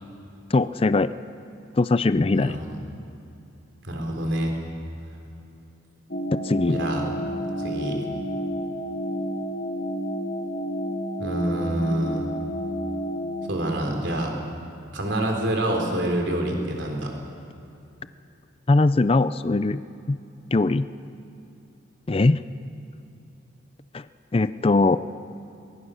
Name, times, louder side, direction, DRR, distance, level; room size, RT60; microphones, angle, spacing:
voice 1, 0.5-1.1 1.8-2.6 6.3-6.8 18.7-19.8 20.1-20.2 20.5-20.9 22.1-22.4 23.9-24.1 24.3-25.0, left 3 dB, 25° left, 14 dB, 0.4 m, -20 dB
voice 2, 2.3-2.7 3.8-4.6 6.7-7.1 7.6-8.1 11.2-12.3 13.5-14.3 14.9-17.1, right 1 dB, 60° right, 2 dB, 3.8 m, -27 dB
sound 1, 6.1-13.5, equal, 50° left, 2.0 m, -30 dB
23.0 x 21.0 x 6.4 m, 2.8 s
head